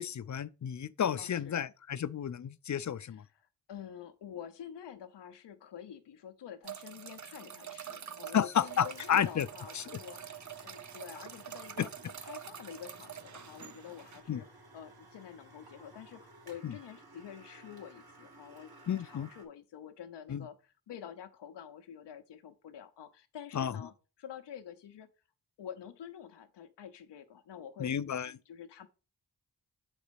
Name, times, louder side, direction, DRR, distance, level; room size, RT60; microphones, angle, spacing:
voice 1, 0.0-3.2 8.3-9.5 9.7-9.8 11.8-11.9 14.3-14.4 16.6-16.7 18.9-19.3 20.3-20.4 23.5-23.7 27.8-28.3, left 8 dB, 45° left, 0.5 m, -31 dB
voice 2, 1.2-1.7 3.0-11.9 12.2-14.5 14.7-18.7 19.0-25.1 25.6-28.0 28.2-28.9, left 9 dB, 85° left, 0.7 m, -48 dB
sound 1, 6.6-14.2, right 9 dB, 45° right, 0.7 m, -46 dB
sound 2, 8.4-19.4, right 2 dB, 60° right, 2.6 m, -56 dB
7.1 x 4.1 x 5.1 m
cardioid pair, 45°, 41 cm